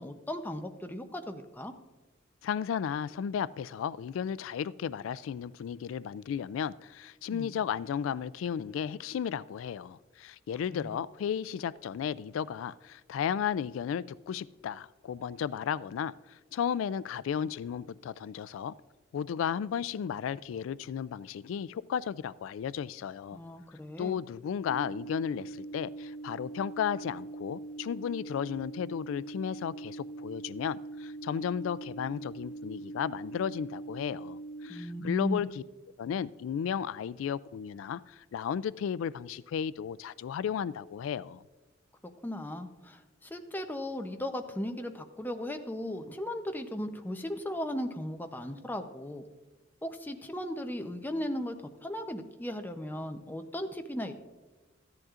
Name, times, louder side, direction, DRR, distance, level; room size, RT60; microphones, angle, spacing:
voice 1, 0.0-1.7 7.3-7.5 10.7-11.0 23.3-24.2 34.7-35.4 42.2-49.2 49.8-54.1, left 1 dB, 10° left, 0.6 m, -37 dB
voice 2, 2.4-18.7 19.1-23.4 24.0-35.6 36.0-41.4, left 8 dB, 90° left, 0.3 m, -34 dB
sound 1, 24.7-34.7, right 2 dB, 75° left, 1.3 m, -42 dB
14.5 x 10.5 x 2.5 m
head